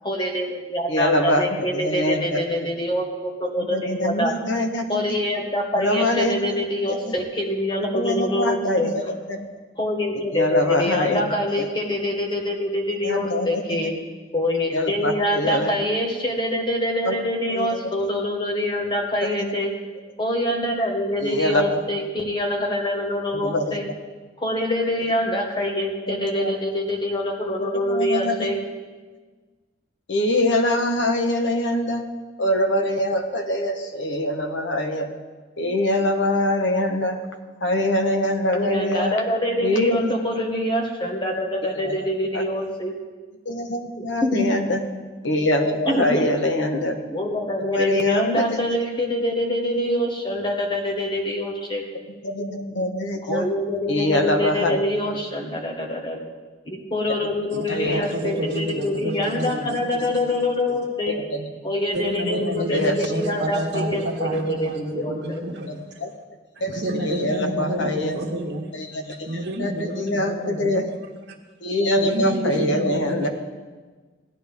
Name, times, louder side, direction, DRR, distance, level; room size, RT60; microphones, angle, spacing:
voice 1, 0.0-4.3 4.9-8.9 9.8-13.9 14.3-19.7 20.2-23.8 24.4-28.6 38.5-42.9 44.0-44.5 45.8-46.2 47.1-51.9 53.3-56.2 56.7-61.2 61.6-65.4, left 1 dB, 25° left, 0 dB, 1.5 m, -25 dB
voice 2, 0.9-2.7 3.6-5.0 5.7-6.5 6.9-7.0 7.9-9.0 9.3-9.4 10.3-11.3 11.6-11.7 13.0-13.6 14.7-15.8 17.0-17.1 17.5-17.8 19.2-19.5 21.2-21.8 23.3-23.8 26.1-26.5 27.9-28.4 30.1-32.0 32.4-35.1 35.6-37.2 37.6-39.2 39.6-40.1 41.8-41.9 42.3-42.4 43.4-44.8 45.2-47.0 47.7-48.6 52.2-53.5 53.9-54.8 57.7-58.1 61.1-61.5 62.3-62.4 62.7-63.0 65.7-66.1 66.6-68.2 68.7-69.3 69.6-70.8 71.6-73.3, left 1 dB, 70° left, 5 dB, 1.1 m, -24 dB
voice 3, 57.8-60.8 61.9-65.8 66.5-68.6 68.9-69.0 69.3-70.9 71.3-71.4 72.0-73.3, right 1 dB, 60° right, -4 dB, 1.4 m, -29 dB
16.5 x 9.9 x 3.6 m, 1.4 s
head